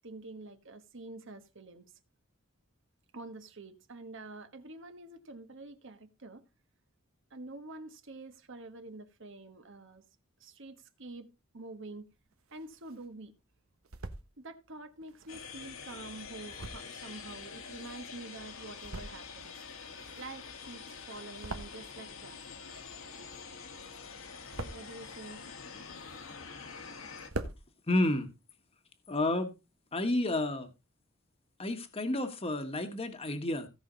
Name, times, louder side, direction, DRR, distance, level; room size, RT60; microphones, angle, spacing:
voice 1, 0.0-1.9 3.1-6.4 7.3-10.0 10.4-12.1 12.5-13.3 14.4-19.6 20.2-22.4 24.6-25.4, right 2 dB, 65° right, 1.4 m, -47 dB
sound 1, 12.1-13.1 13.5-14.3 15.0-18.2 18.6-19.5 19.7-22.2 22.4-23.7 24.0-25.0 25.5-26.6 26.9-27.0 27.2-27.6, right 2 dB, 85° right, 1.2 m, -44 dB
sound 2, 15.3-27.3, left 5 dB, 70° left, 1.7 m, -46 dB
voice 2, 27.9-28.3 29.1-29.6 29.9-30.7 31.6-33.7, left 1 dB, 30° left, 1.4 m, -30 dB
16.5 x 5.6 x 4.0 m
head